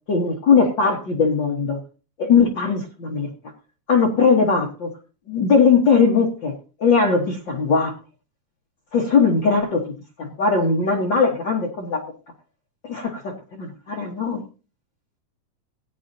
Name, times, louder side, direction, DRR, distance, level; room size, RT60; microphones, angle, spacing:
voice 1, 0.1-1.8 2.2-3.3 3.9-4.9 5.3-6.5 6.8-7.9 8.9-12.0 12.9-14.4, left 5 dB, 80° left, -1 dB, 1.0 m, -19 dB
17.5 x 8.9 x 2.7 m, 0.34 s
omnidirectional pair, 4.4 m